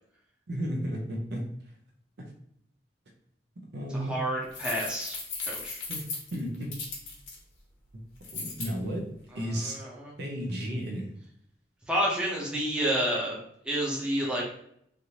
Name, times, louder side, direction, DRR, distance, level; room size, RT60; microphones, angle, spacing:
voice 1, 0.5-1.5 3.7-4.2 5.9-6.0 6.3-6.9 8.3-9.9 10.2-11.1, equal, 60° right, 1 dB, 0.7 m, -33 dB
voice 2, 3.9-5.2 5.5-5.8 9.3-10.1 11.9-13.4 13.6-14.4, equal, 5° right, -5 dB, 0.7 m, -30 dB
sound 1, 4.5-7.3 8.2-8.7, left 4 dB, 90° left, 1.1 m, -36 dB
3.3 x 2.6 x 2.9 m, 0.70 s
head